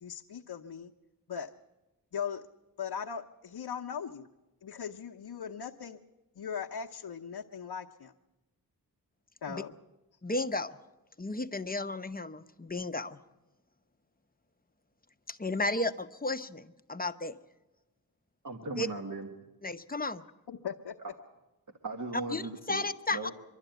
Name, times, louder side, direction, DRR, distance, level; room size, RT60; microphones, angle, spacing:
voice 1, 0.0-0.9 1.3-1.5 2.1-2.5 2.8-4.3 4.6-6.0 6.4-8.1 9.4-9.7 20.5-21.0, left 7 dB, 85° left, -1 dB, 0.9 m, -39 dB
voice 2, 10.2-10.8 11.2-13.2 15.3-17.4 18.8-18.9 19.6-20.2 22.3-22.4 22.7-23.3, left 2 dB, 25° left, 9 dB, 0.7 m, -33 dB
voice 3, 18.4-19.3 21.0-21.1 21.8-22.8 23.1-23.3, right 2 dB, 50° right, 3 dB, 1.6 m, -37 dB
24.5 x 12.0 x 9.2 m, 1.0 s
wide cardioid pair, 95°, 39 cm